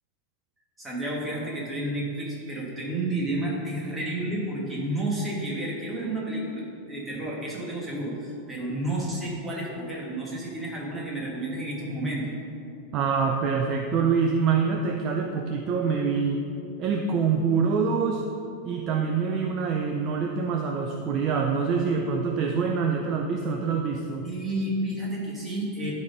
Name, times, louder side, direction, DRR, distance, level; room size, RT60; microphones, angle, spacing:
voice 1, 0.8-12.3 24.2-25.9, right 1 dB, 10° right, -5 dB, 1.5 m, -31 dB
voice 2, 12.9-16.4 16.8-18.3 18.6-24.3, right 5 dB, 30° right, 3 dB, 0.4 m, -25 dB
12.0 x 4.2 x 5.2 m, 2.5 s
supercardioid pair, 175°, 0 cm